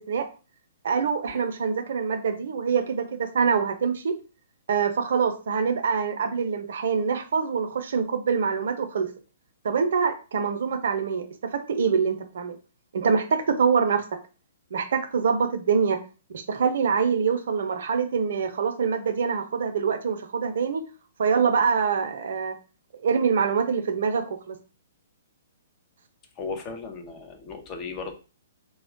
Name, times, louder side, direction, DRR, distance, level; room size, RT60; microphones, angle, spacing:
voice 1, 0.8-4.1 4.7-9.1 9.6-11.3 11.5-12.6 12.9-14.0 14.7-16.0 16.3-20.8 21.2-22.5 23.0-24.6, right 6 dB, 60° right, 6 dB, 0.5 m, -25 dB
voice 2, 26.4-28.1, left 4 dB, 30° left, 4 dB, 0.6 m, -36 dB
2.2 x 2.0 x 3.7 m, 0.34 s
figure-of-eight pair, 120°, 0 cm